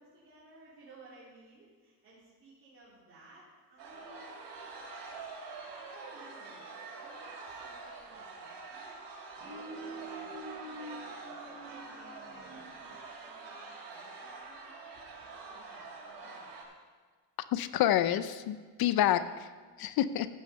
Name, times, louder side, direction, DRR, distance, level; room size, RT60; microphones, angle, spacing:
voice 1, 0.0-4.3 5.9-6.7 7.0-9.1 9.4-12.8 13.2-16.6, right 2 dB, 30° right, -9 dB, 3.1 m, -57 dB
sound 1, 3.8-16.6, right 3 dB, 90° right, 2.7 m, -45 dB
voice 2, 17.5-19.5 19.8-20.3, left 11 dB, 60° left, 13 dB, 0.5 m, -28 dB
15.0 x 6.4 x 5.4 m, 1.5 s
cardioid pair, 160°, 41 cm